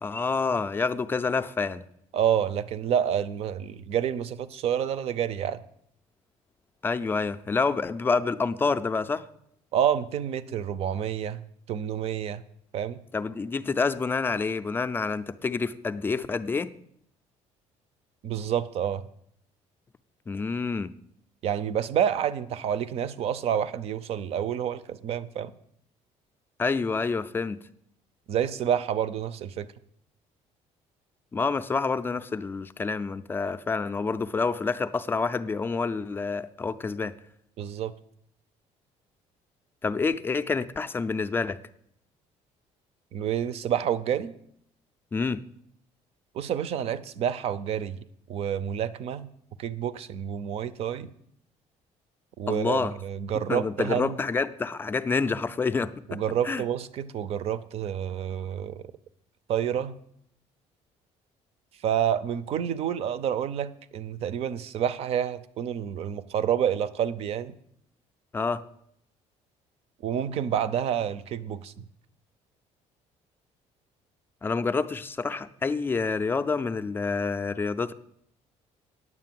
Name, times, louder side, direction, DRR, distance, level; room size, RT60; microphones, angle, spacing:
voice 1, 0.0-1.8 6.8-9.2 13.1-16.7 20.3-20.9 26.6-27.6 31.3-37.1 39.8-41.6 45.1-45.4 52.5-53.0 53.5-56.2 56.4-56.6 68.3-68.6 74.4-77.9, left 4 dB, 15° left, 11 dB, 0.4 m, -28 dB
voice 2, 2.1-5.6 9.7-11.4 11.7-12.4 12.7-13.0 18.2-19.0 21.4-25.5 28.3-29.7 37.6-37.9 43.1-44.3 46.3-49.3 49.6-51.1 52.4-54.2 56.1-58.9 59.5-60.0 61.8-67.5 70.0-71.8, right 9 dB, 55° right, 16 dB, 0.6 m, -28 dB
9.6 x 7.6 x 7.5 m, 0.70 s
cardioid pair, 160°, 13 cm